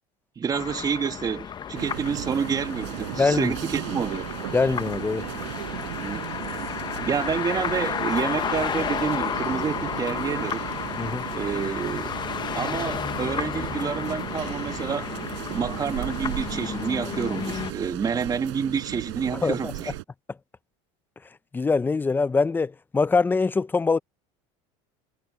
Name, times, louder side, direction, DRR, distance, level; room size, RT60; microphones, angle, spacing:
voice 1, 0.4-4.3 5.9-6.6 7.0-10.7 11.3-12.1 12.5-15.1 15.5-19.9, right 6 dB, 25° right, 1.6 m, -28 dB
sound 1, 0.5-17.7, left 8 dB, 30° left, 1.1 m, -32 dB
sound 2, 1.8-20.0, right 24 dB, 85° right, 5.9 m, -36 dB
voice 2, 3.2-3.5 4.5-5.3 11.0-11.3 19.3-19.7 21.5-24.0, left 4 dB, 15° left, 0.6 m, -23 dB
supercardioid pair, 120°, 15 cm